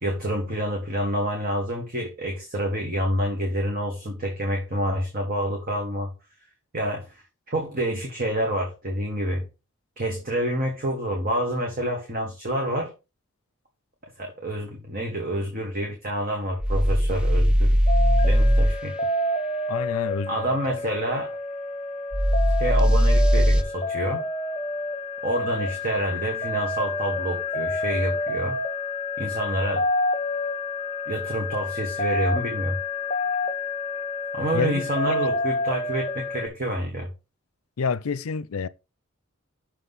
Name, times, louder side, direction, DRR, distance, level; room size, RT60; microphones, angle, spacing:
voice 1, 0.0-6.1 6.7-9.4 10.0-12.9 14.2-17.8 18.2-18.9 20.3-21.3 22.6-24.2 25.2-28.6 29.2-29.9 31.1-32.8 34.3-37.1, right 1 dB, 40° right, 1.5 m, -28 dB
sound 1, 16.6-18.7 22.1-23.6, equal, 5° right, 0.4 m, -19 dB
sound 2, 17.9-36.5, left 2 dB, 30° left, 0.7 m, -29 dB
voice 2, 19.7-20.4 34.5-35.2 37.8-38.7, left 5 dB, 85° left, 0.5 m, -28 dB
6.5 x 5.6 x 4.1 m
head